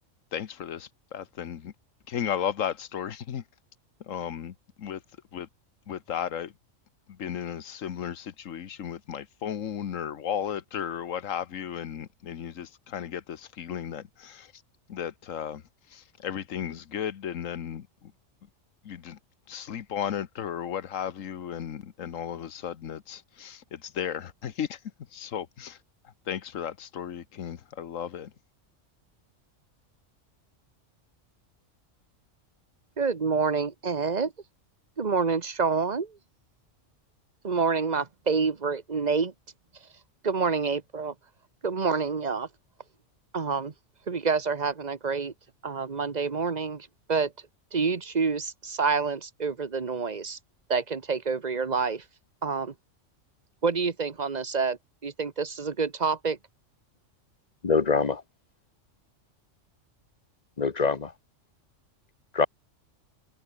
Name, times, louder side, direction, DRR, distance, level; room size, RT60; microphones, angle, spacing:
voice 1, 0.3-1.7 2.1-3.4 4.0-5.0 5.3-5.5 5.9-6.5 7.1-14.5 14.9-18.1 18.8-19.2 19.5-24.8 25.1-25.8 26.0-28.3, left 9 dB, 90° left, 1.4 m, -35 dB
voice 2, 33.0-34.3 35.0-36.2 37.4-39.3 40.2-41.1 41.6-42.5 43.3-43.7 44.1-45.3 45.6-47.3 47.7-50.4 50.7-52.0 52.4-52.7 53.6-56.4, right 5 dB, 35° right, 1.3 m, -27 dB
voice 3, 57.6-58.2 60.6-61.1 62.3-62.5, left 5 dB, 35° left, 1.2 m, -24 dB
omnidirectional pair, 1.3 m